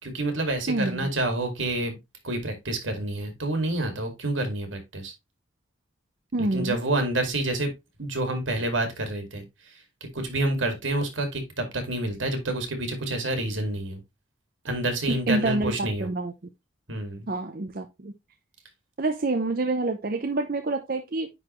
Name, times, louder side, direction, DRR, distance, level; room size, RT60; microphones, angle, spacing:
voice 1, 0.0-2.0 2.2-5.1 6.4-7.7 8.0-9.8 10.1-14.0 14.6-16.1 16.9-17.3, right 2 dB, 80° right, 2.3 m, -28 dB
voice 2, 0.7-1.1 6.3-6.8 15.1-15.7 16.0-16.3 17.3-18.1 19.0-21.3, right 2 dB, 50° right, 0.7 m, -27 dB
9.8 x 4.0 x 3.1 m
head